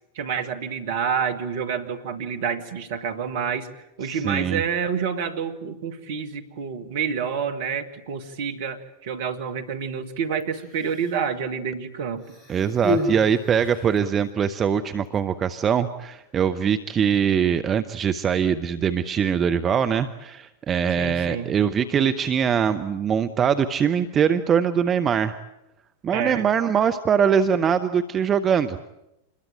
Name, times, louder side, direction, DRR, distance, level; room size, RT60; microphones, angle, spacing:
voice 1, 0.2-3.7 4.0-12.3 21.0-21.5 26.1-26.5, right 6 dB, 55° right, 7 dB, 2.1 m, -28 dB
voice 2, 4.0-4.6 12.5-25.4 26.0-28.8, right 7 dB, 25° right, 9 dB, 1.0 m, -22 dB
Human voice, 10.4-11.3 12.2-14.1 15.1-15.2, left 1 dB, 15° left, 6.3 m, -30 dB
27.0 x 21.5 x 9.1 m, 0.88 s
figure-of-eight pair, 90°, 0 cm